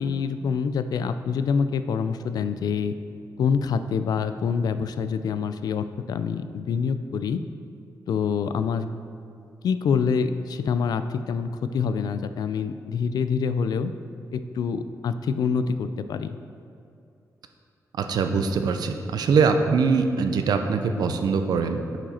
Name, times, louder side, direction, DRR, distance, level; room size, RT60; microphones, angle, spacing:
voice 1, 0.0-3.0 3.4-7.4 8.1-9.0 9.6-13.9 14.3-16.4, left 6 dB, 80° left, 11 dB, 0.4 m, -26 dB
voice 2, 18.0-22.0, right 5 dB, 90° right, 7 dB, 0.6 m, -23 dB
8.9 x 5.0 x 4.3 m, 2.5 s
wide cardioid pair, 150°, 7 cm